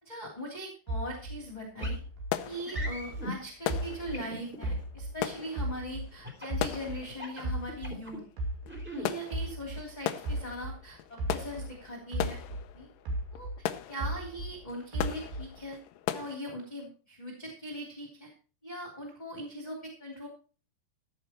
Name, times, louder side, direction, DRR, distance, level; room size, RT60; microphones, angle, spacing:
voice 1, 0.0-2.0 2.4-8.2 8.9-12.4 12.7-12.9 13.3-13.5 13.9-15.8 16.1-18.3 18.6-20.3, equal, 15° left, 0 dB, 2.2 m, -40 dB
sound 1, 0.9-4.3 4.6-7.1 7.4-11.8 12.1-14.6 14.9-15.6, right 1 dB, 65° right, 4.3 m, -36 dB
sound 2, 1.3-1.4 1.8-16.4, left 12 dB, 80° left, 2.0 m, -39 dB
sound 3, 1.8-2.0 2.6-3.3 4.1-4.7 6.2-6.6 7.1-8.2 8.6-9.1, equal, 5° right, 2.0 m, -40 dB
15.0 x 6.9 x 4.3 m, 0.37 s
omnidirectional pair, 4.8 m